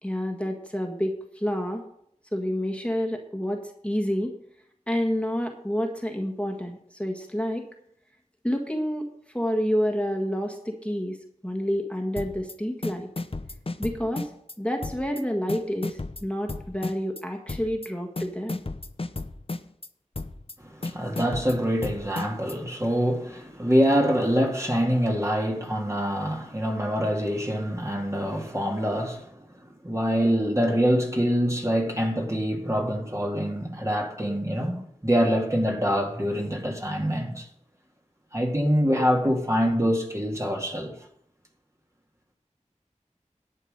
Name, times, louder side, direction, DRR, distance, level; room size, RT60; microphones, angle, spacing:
voice 1, 0.0-1.8 2.3-4.3 4.9-7.6 8.4-9.1 9.3-11.2 11.4-13.1 13.8-14.3 14.6-18.6, equal, 10° left, 1.7 m, -28 dB
sound 1, 12.2-12.5 12.8-14.5 14.8-15.2 15.5-17.2 17.5-17.9 18.2-19.9 20.1-20.5 20.8-22.5, left 2 dB, 45° left, 0.7 m, -34 dB
voice 2, 20.6-29.4 29.8-37.5 38.3-41.0, equal, 20° right, 2.0 m, -25 dB
11.0 x 8.3 x 5.4 m
wide cardioid pair, 40°, 13 cm